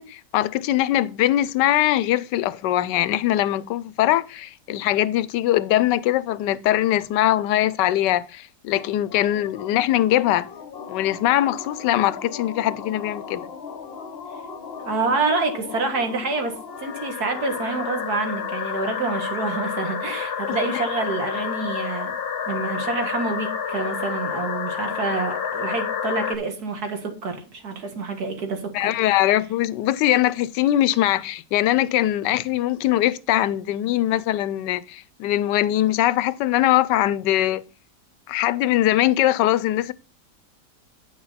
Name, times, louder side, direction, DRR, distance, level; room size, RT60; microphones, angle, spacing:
voice 1, 0.0-10.5 10.9-13.5 20.5-20.6 28.7-37.6 38.3-39.9, left 13 dB, 85° left, 1.2 m, -21 dB
sound 1, 8.7-26.4, left 7 dB, 45° left, 0.9 m, -31 dB
voice 2, 14.8-22.1 22.5-28.9, right 3 dB, 65° right, 2.1 m, -27 dB
9.5 x 6.4 x 4.1 m
omnidirectional pair, 1.8 m